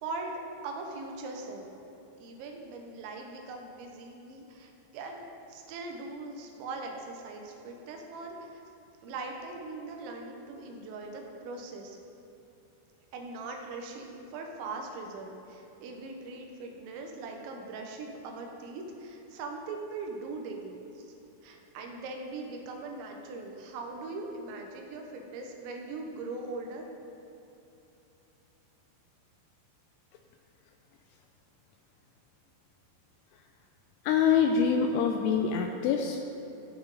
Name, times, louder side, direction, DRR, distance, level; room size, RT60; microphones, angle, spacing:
voice 1, 0.0-1.7 2.2-8.6 9.0-12.0 13.1-21.1 21.4-26.9, right 3 dB, 85° right, 2 dB, 3.3 m, -40 dB
voice 2, 34.0-36.2, left 6 dB, 85° left, 4 dB, 2.4 m, -25 dB
15.0 x 5.8 x 4.0 m, 3.0 s
omnidirectional pair, 5.1 m